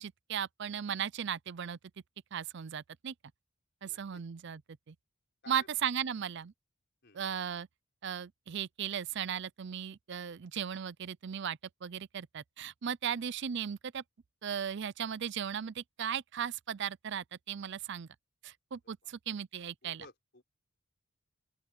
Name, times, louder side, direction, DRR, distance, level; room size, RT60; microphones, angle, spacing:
voice 1, 0.0-1.8 2.3-3.1 3.8-4.6 4.9-5.0 5.5-6.5 7.1-7.7 8.0-14.0 14.4-18.1 18.4-20.1, right 8 dB, 55° right, 0.5 m, -37 dB
voice 2, 3.8-4.2 5.4-5.7 7.0-7.2 13.0-13.2 19.0-19.1 19.8-20.4, left 3 dB, 55° left, 4.7 m, -56 dB
open air
head